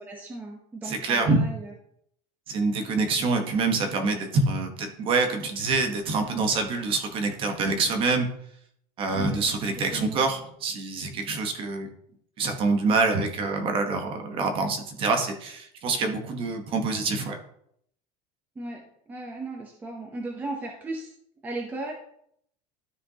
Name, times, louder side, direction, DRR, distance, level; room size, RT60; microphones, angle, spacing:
voice 1, 0.0-1.7 9.1-9.4 9.9-10.3 18.6-21.1 21.4-21.9, right 2 dB, 10° right, 1 dB, 0.7 m, -36 dB
voice 2, 0.8-1.4 2.5-8.3 9.0-11.9 12.4-17.4, right 3 dB, 30° right, 5 dB, 1.0 m, -26 dB
13.0 x 5.1 x 2.8 m, 0.70 s
cardioid pair, 175°, 18 cm